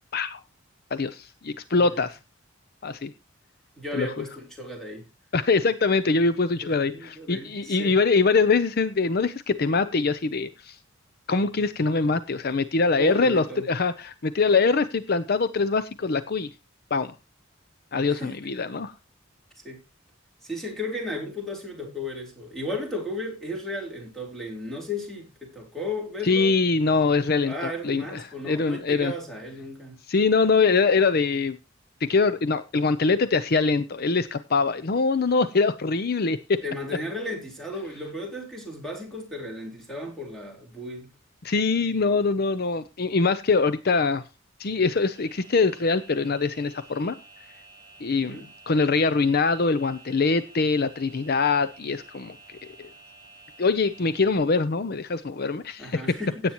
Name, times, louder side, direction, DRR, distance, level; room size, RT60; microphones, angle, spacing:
voice 1, 0.9-2.2 2.8-3.1 3.9-4.1 5.3-10.8 11.3-16.5 16.9-17.1 17.9-18.9 26.2-29.1 30.1-31.6 32.0-36.6 41.4-44.2 44.6-47.1 48.0-52.4 52.6-52.9 53.6-56.2, left 4 dB, 50° left, 0.6 m, -23 dB
voice 2, 3.8-5.1 6.6-8.0 13.0-13.7 18.1-18.3 19.6-19.8 20.4-26.5 27.4-30.0 36.6-41.1 48.2-48.5 55.8-56.4, left 1 dB, ahead, 3.8 m, -34 dB
sound 1, 45.1-54.4, right 3 dB, 20° right, 5.8 m, -51 dB
16.5 x 8.6 x 3.0 m
head